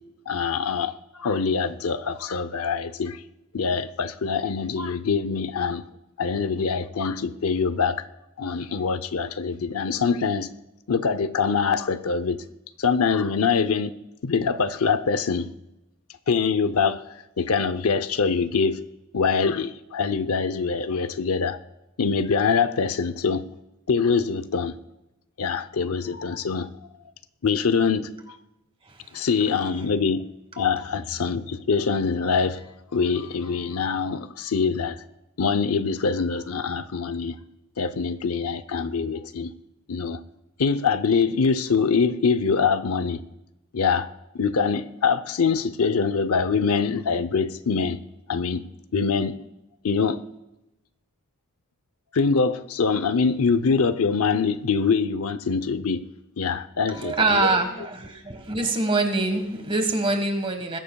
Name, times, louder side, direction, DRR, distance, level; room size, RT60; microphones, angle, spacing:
voice 1, 0.3-3.2 3.5-5.8 6.2-8.0 8.4-10.5 10.9-12.4 12.8-13.9 14.2-15.5 16.3-17.1 17.4-18.8 19.1-21.6 22.0-23.5 23.9-24.7 25.4-26.7 27.4-28.1 29.1-30.3 30.6-32.6 32.9-35.0 35.4-37.4 37.8-39.5 39.9-40.2 40.6-43.2 43.7-44.1 44.3-48.0 48.3-48.6 48.9-49.4 49.8-50.2 52.1-56.0 56.4-57.6, left 5 dB, 85° left, 0.7 m, -24 dB
voice 2, 56.9-60.8, right 3 dB, 25° right, 1.5 m, -24 dB
20.5 x 15.5 x 2.3 m
head